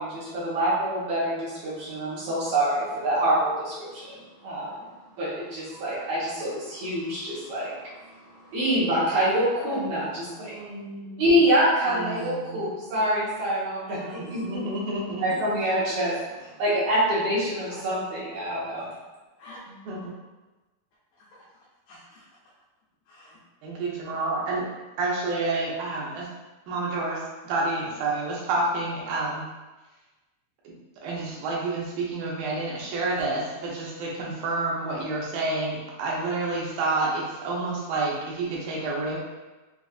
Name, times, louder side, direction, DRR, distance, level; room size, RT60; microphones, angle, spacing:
voice 1, 0.0-4.1 4.4-4.7 5.2-7.7 8.5-10.6 11.2-14.7 15.2-16.2 16.6-18.9, right 1 dB, 65° right, -9 dB, 1.7 m, -26 dB
voice 2, 9.6-10.3 17.7-17.8 19.4-19.6 21.2-21.4 21.9-22.3 23.1-23.4, left 2 dB, 80° left, -9 dB, 2.4 m, -45 dB
voice 3, 10.4-11.2 11.9-12.9 13.9-15.4 19.7-20.1 23.6-24.7 25.0-26.3 26.7-29.5 30.6-30.8 31.0-39.2, right 2 dB, 80° right, -4 dB, 2.5 m, -29 dB
6.1 x 2.4 x 2.4 m, 1.2 s
omnidirectional pair, 4.2 m